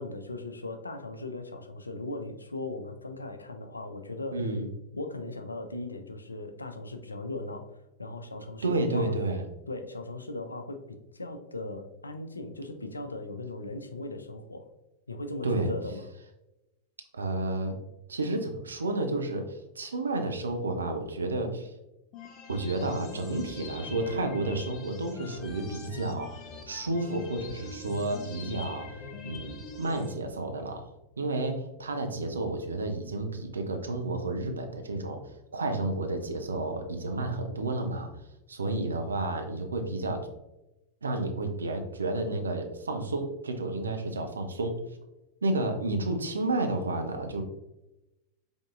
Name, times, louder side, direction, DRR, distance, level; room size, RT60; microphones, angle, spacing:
voice 1, 0.0-4.4 4.9-7.6 8.0-9.1 9.7-14.7 15.1-16.1, left 2 dB, 80° left, 7 dB, 0.5 m, -38 dB
voice 2, 4.3-4.7 8.6-9.4 15.4-15.7 17.1-17.8 18.1-21.7 22.5-29.0 29.2-30.9 31.2-35.2 35.5-38.1 38.5-40.3 41.0-44.8 45.4-47.4, right 2 dB, 75° right, 5 dB, 0.6 m, -31 dB
sound 1, 22.1-30.1, left 4 dB, 35° left, 0.6 m, -43 dB
5.2 x 3.5 x 2.4 m, 0.96 s
figure-of-eight pair, 90°, 0 cm